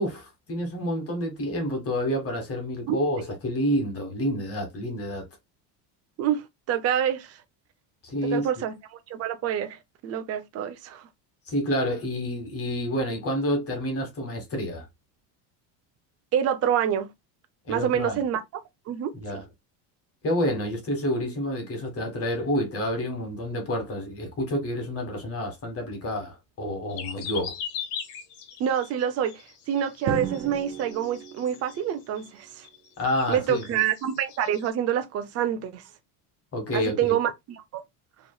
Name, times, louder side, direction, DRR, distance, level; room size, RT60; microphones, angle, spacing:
voice 1, 0.0-5.2 8.0-8.5 11.5-14.9 17.7-18.2 19.2-19.4 20.2-27.6 33.0-33.8 36.5-37.1, equal, 30° left, 1.4 m, -29 dB
voice 2, 6.2-7.4 8.2-11.1 16.3-17.1 17.7-19.1 28.6-32.7 33.3-35.8 36.7-37.8, right 9 dB, 35° right, 0.6 m, -27 dB
sound 1, 26.9-31.9 32.2-32.3 32.6-32.9 33.1-34.7, left 7 dB, 80° left, 1.5 m, -39 dB
Drum, 30.1-32.2, right 7 dB, 75° right, 1.0 m, -33 dB
4.9 x 3.2 x 2.3 m
cardioid pair, 155°, 46 cm